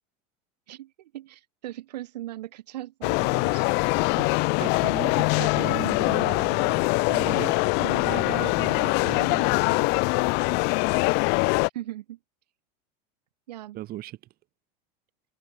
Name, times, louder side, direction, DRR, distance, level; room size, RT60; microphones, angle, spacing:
voice 1, 0.7-3.7 7.8-8.1 11.7-12.2 13.5-13.8, right 14 dB, 90° right, 3.3 m, -39 dB
sound 1, 3.0-11.7, left 30 dB, 55° left, 0.5 m, -23 dB
voice 2, 4.2-10.0 13.7-14.2, right 15 dB, 50° right, 4.0 m, -37 dB
supercardioid pair, 110°, 21 cm